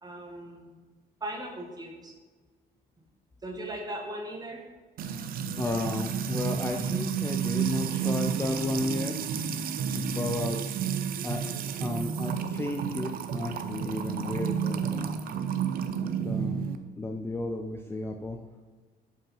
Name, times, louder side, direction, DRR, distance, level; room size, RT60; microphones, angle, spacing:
voice 1, 0.0-0.8 1.2-2.1 3.4-4.6, right 1 dB, 25° right, 1 dB, 1.5 m, -38 dB
Music / Water tap faucet / Trickle dribble, 5.0-16.8, right 7 dB, 60° right, 0.6 m, -31 dB
voice 2, 5.6-9.2 9.9-10.6 11.2-11.5 11.8-15.3 16.2-16.7 17.0-18.4, left 2 dB, 15° left, 3 dB, 0.5 m, -33 dB
5.4 x 5.0 x 5.6 m, 1.3 s
cardioid pair, 110°, 17 cm